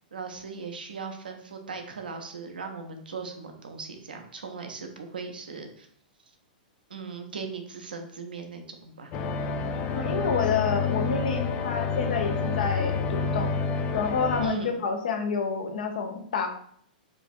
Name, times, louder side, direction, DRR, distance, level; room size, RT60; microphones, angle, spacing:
voice 1, 0.1-5.9 6.9-9.1 14.4-14.8, right 5 dB, 85° right, 4 dB, 0.6 m, -39 dB
sound 1, 9.1-14.5, left 5 dB, 35° left, 0.3 m, -28 dB
voice 2, 9.9-13.5 13.9-16.5, left 5 dB, 70° left, 4 dB, 0.7 m, -28 dB
4.9 x 2.5 x 2.5 m, 0.62 s
hypercardioid pair, 115°, 5 cm